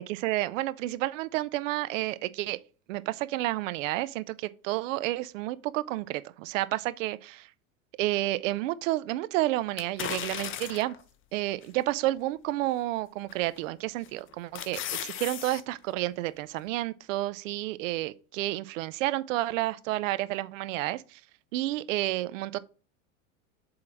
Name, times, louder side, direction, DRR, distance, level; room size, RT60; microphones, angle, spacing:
voice 1, 0.0-2.6 2.9-7.2 8.0-11.0 11.3-21.2 21.5-22.6, right 16 dB, 70° right, 0.6 m, -30 dB
sound 1, 9.8-11.0 11.6-11.7 13.3-13.6 14.1-15.6 16.0-16.1, left 10 dB, 30° left, 0.7 m, -36 dB
7.6 x 3.8 x 4.5 m
hypercardioid pair, 100°, 40 cm